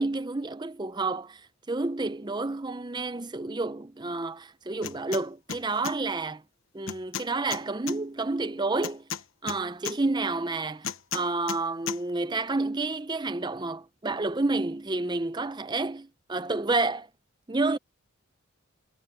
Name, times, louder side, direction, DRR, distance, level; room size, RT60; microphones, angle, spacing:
voice 1, 0.0-1.4 1.7-6.4 6.7-9.0 9.4-17.1 17.5-17.8, right 3 dB, 20° right, 0.6 m, -29 dB
sound 1, 4.8-5.2 5.5-6.0 6.9-8.0 8.8-10.0 10.8-11.6 11.9-12.0, left 7 dB, 65° left, 1.1 m, -34 dB
head